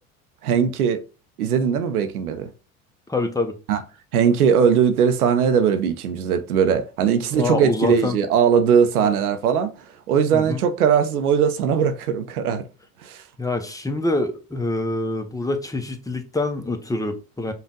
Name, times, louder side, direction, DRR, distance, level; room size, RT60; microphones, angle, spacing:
voice 1, 0.4-1.0 1.4-2.5 3.7-3.8 4.1-9.7 10.1-12.6 13.0-13.2, right 7 dB, 90° right, 0.6 m, -20 dB
voice 2, 3.1-3.5 7.3-8.2 9.0-9.2 10.3-10.6 13.4-17.5, left 2 dB, 10° left, 0.8 m, -25 dB
5.3 x 2.5 x 3.7 m
hypercardioid pair, 75°, 43 cm